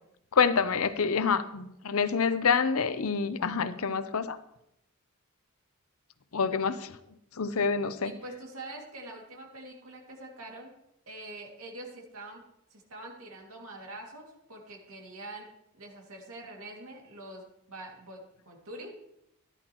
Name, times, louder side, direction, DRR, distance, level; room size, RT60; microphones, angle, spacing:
voice 1, 0.3-4.4 6.3-7.0 7.4-8.1, left 5 dB, 75° left, 13 dB, 0.7 m, -27 dB
voice 2, 8.0-10.7 11.1-12.4 12.7-18.9, right 2 dB, 75° right, 0 dB, 2.3 m, -45 dB
14.5 x 11.0 x 3.1 m, 0.79 s
head